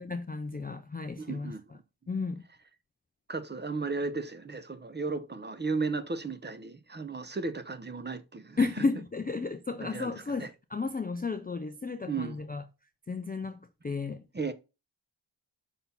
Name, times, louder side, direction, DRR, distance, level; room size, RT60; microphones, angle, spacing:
voice 1, 0.0-1.5 2.1-2.4 8.6-12.6 13.1-14.2, left 4 dB, 20° left, 0.4 m, -33 dB
voice 2, 1.2-1.8 3.3-8.6 9.8-10.1 10.4-10.5 12.1-12.4 14.3-14.5, right 4 dB, 20° right, 0.8 m, -35 dB
6.1 x 5.7 x 5.6 m
wide cardioid pair, 175°, 48 cm